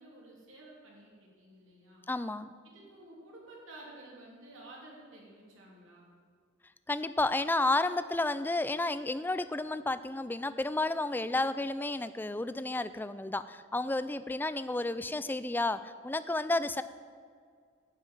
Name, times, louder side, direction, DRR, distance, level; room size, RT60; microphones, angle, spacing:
voice 1, 0.0-2.1 2.6-6.1, right 1 dB, 75° right, -4 dB, 3.2 m, -52 dB
voice 2, 2.1-2.5 6.9-16.8, left 2 dB, 10° left, 14 dB, 0.3 m, -31 dB
11.5 x 5.8 x 8.9 m, 2.1 s
head